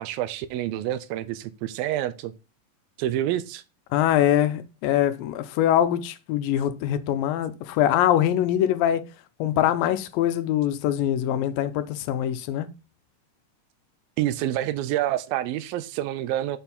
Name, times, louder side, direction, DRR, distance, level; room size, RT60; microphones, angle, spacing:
voice 1, 0.0-2.3 3.0-3.6 14.2-16.6, right 13 dB, 90° right, 2.5 m, -27 dB
voice 2, 3.9-9.1 9.4-12.7, left 11 dB, 90° left, 2.4 m, -23 dB
7.0 x 4.4 x 5.4 m
omnidirectional pair, 4.1 m